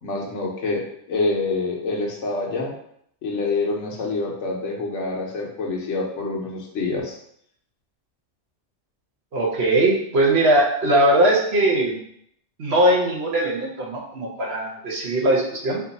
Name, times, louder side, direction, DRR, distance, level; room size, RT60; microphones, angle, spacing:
voice 1, 0.0-2.7 3.2-7.1, left 3 dB, 70° left, -1 dB, 1.2 m, -26 dB
voice 2, 9.3-12.0 12.6-15.8, right 1 dB, 55° right, -3 dB, 1.1 m, -20 dB
4.8 x 2.6 x 4.1 m, 0.70 s
omnidirectional pair, 1.3 m